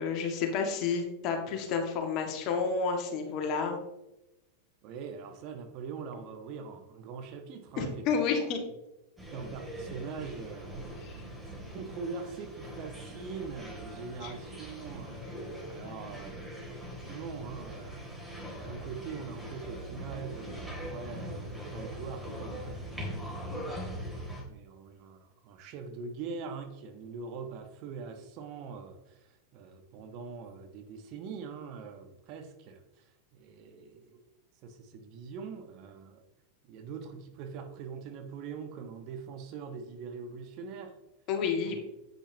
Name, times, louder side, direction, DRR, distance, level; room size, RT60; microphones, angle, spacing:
voice 1, 0.0-3.8 7.8-8.6 11.0-11.1 14.2-14.3 15.8-16.0 41.3-41.8, left 5 dB, 40° left, 3 dB, 2.0 m, -30 dB
voice 2, 4.8-8.0 8.3-8.5 9.3-10.7 11.7-15.3 15.7-16.3 16.6-18.0 18.6-22.8 23.3-24.0 24.4-34.2 34.6-36.2 36.7-40.9 41.7-41.8, right 5 dB, 45° right, 6 dB, 1.5 m, -43 dB
sound 1, 9.2-24.4, equal, 5° right, 3.0 m, -41 dB
10.0 x 8.9 x 3.0 m, 0.93 s
figure-of-eight pair, 90°, 0 cm